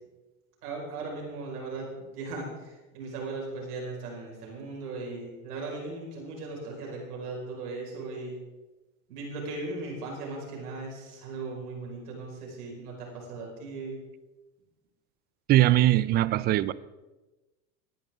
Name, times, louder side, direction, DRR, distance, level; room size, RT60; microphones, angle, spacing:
voice 1, 0.6-8.4 9.1-14.0, right 3 dB, 85° right, -1 dB, 5.3 m, -38 dB
voice 2, 15.5-16.7, right 14 dB, 25° right, 18 dB, 0.3 m, -21 dB
18.5 x 10.5 x 3.7 m, 1.1 s
hypercardioid pair, 105°, 45 cm